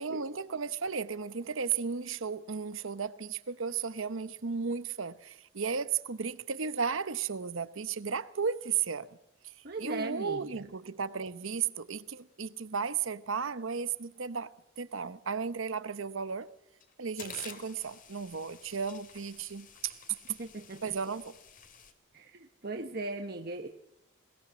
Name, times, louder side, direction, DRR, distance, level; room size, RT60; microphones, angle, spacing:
voice 1, 0.0-9.2 9.4-16.5 17.0-20.0 20.8-21.3, right 6 dB, 75° right, 0.9 m, -34 dB
voice 2, 9.6-10.6 20.4-20.9 22.1-23.7, right 2 dB, 45° right, 1.1 m, -39 dB
sound 1, 16.3-16.4 16.8-21.9, left 6 dB, 40° left, 2.3 m, -51 dB
20.5 x 20.5 x 6.2 m
head